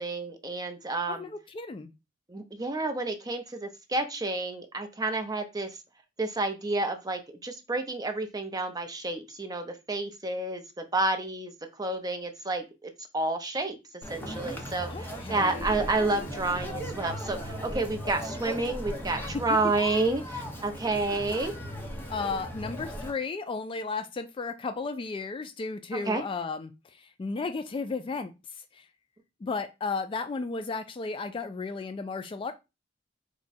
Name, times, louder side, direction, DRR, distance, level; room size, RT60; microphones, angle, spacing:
voice 1, 0.0-1.3 2.3-5.7 6.2-11.5 11.8-13.8 14.1-21.5 26.0-26.2, right 2 dB, 20° right, 6 dB, 0.6 m, -30 dB
voice 2, 1.1-1.9 14.9-15.8 19.3-19.4 22.1-28.9 29.4-32.5, left 4 dB, 30° left, 9 dB, 0.3 m, -34 dB
Conversation, 14.0-23.1, equal, 10° left, 0.8 m, -37 dB
4.6 x 2.2 x 4.0 m, 0.25 s
head